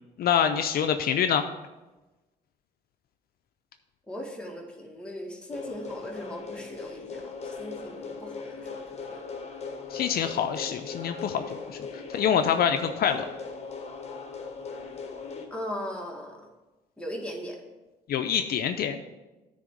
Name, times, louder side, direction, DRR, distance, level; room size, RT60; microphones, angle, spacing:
voice 1, 0.2-1.4 9.9-11.8 12.1-13.3 18.1-19.0, left 8 dB, 65° left, 8 dB, 0.5 m, -25 dB
voice 2, 4.1-8.7 9.0-9.2 15.5-16.4 17.0-17.6, equal, 5° left, -1 dB, 1.8 m, -38 dB
sound 1, 5.5-15.5, left 5 dB, 40° left, 1.2 m, -39 dB
9.0 x 3.5 x 6.5 m, 1.1 s
supercardioid pair, 70°, 17 cm